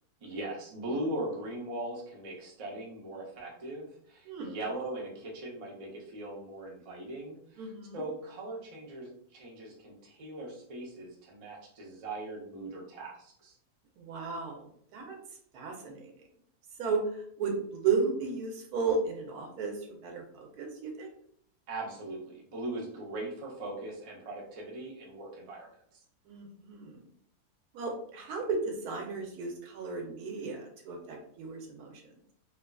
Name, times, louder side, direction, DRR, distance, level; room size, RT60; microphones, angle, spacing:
voice 1, 0.2-13.5 21.7-26.0, right 1 dB, 45° right, -3 dB, 0.4 m, -40 dB
voice 2, 4.3-4.6 7.6-8.0 14.0-14.6 14.9-15.2 15.5-16.1 16.8-17.0 17.4-21.1 26.3-27.1 27.7-32.1, right 4 dB, 90° right, 2 dB, 1.2 m, -34 dB
2.8 x 2.4 x 2.2 m, 0.65 s
omnidirectional pair, 1.6 m